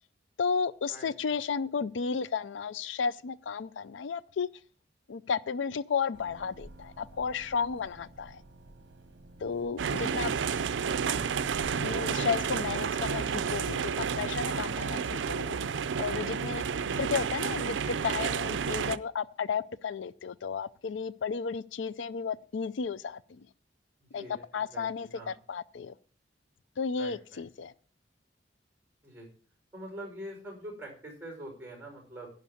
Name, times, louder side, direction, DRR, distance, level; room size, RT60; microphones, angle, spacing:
voice 1, 0.4-4.5 5.1-8.4 9.4-10.3 11.8-15.6 16.0-16.7 17.0-23.5 24.1-24.2 24.5-25.9 26.8-27.7, left 5 dB, 90° left, 0.4 m, -33 dB
sound 1, 6.1-14.3, right 3 dB, 70° right, 0.9 m, -48 dB
sound 2, 9.8-19.0, right 6 dB, 90° right, 0.5 m, -31 dB
voice 2, 24.1-25.3 27.0-27.4 29.0-29.3 29.7-32.3, right 1 dB, 15° right, 5.4 m, -44 dB
11.0 x 5.2 x 8.4 m
head